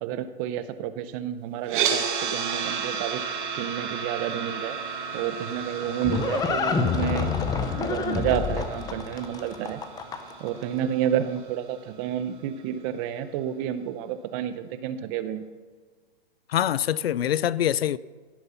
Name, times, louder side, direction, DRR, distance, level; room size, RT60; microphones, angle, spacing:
voice 1, 0.0-3.2 3.6-4.8 5.1-7.3 7.8-9.8 10.4-15.5, right 10 dB, 35° right, 0.9 m, -30 dB
sound 1, 1.6-11.8, right 6 dB, 55° right, 2.0 m, -33 dB
Livestock farm animals working animals, 5.4-10.5, left 5 dB, 15° left, 0.7 m, -27 dB
voice 2, 16.5-18.0, left 11 dB, 85° left, 0.5 m, -24 dB
16.0 x 7.9 x 5.8 m
hypercardioid pair, 140°, 30 cm